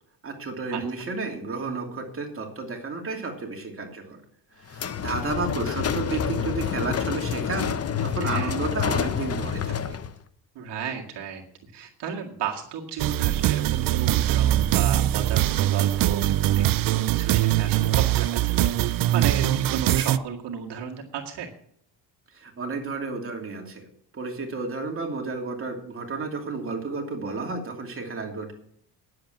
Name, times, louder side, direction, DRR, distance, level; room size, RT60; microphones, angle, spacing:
voice 1, 0.2-4.2 4.6-7.7 8.0-10.0 22.3-23.9 24.1-28.5, right 3 dB, 30° right, 2 dB, 2.7 m, -32 dB
sound 1, 4.7-10.2, left 8 dB, 35° left, 0.8 m, -28 dB
voice 2, 8.2-8.6 10.6-11.4 11.7-21.5, right 7 dB, 70° right, -1 dB, 2.0 m, -34 dB
sound 2, 13.0-20.2, right 13 dB, 55° right, 0.5 m, -22 dB
10.5 x 7.8 x 7.6 m, 0.67 s
cardioid pair, 120°, 42 cm